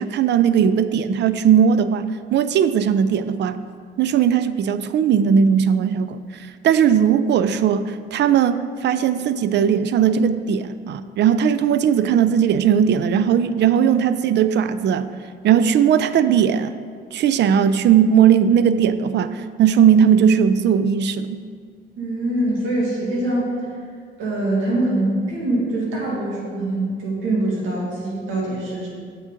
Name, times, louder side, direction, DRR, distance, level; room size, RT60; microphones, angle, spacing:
voice 1, 0.0-3.6 4.0-15.1 15.4-16.8 17.1-21.4, right 8 dB, 60° right, 12 dB, 0.4 m, -18 dB
voice 2, 22.0-23.7 24.2-28.9, right 1 dB, 85° right, -4 dB, 2.0 m, -23 dB
7.5 x 6.4 x 3.8 m, 2.1 s
cardioid pair, 90°, 20 cm